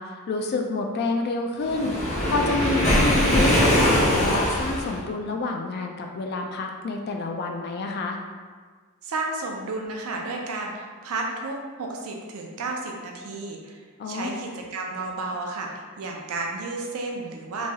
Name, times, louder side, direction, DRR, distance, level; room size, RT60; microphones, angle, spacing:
voice 1, 0.0-1.9 2.3-8.2 14.0-14.4, left 3 dB, 50° left, 3 dB, 0.3 m, -28 dB
Waves surf, 1.7-5.0, equal, 35° left, 0.7 m, -21 dB
voice 2, 9.0-13.8 14.1-15.7 16.0-17.7, right 3 dB, 75° right, 1 dB, 0.5 m, -32 dB
3.0 x 2.2 x 2.8 m, 1.5 s
head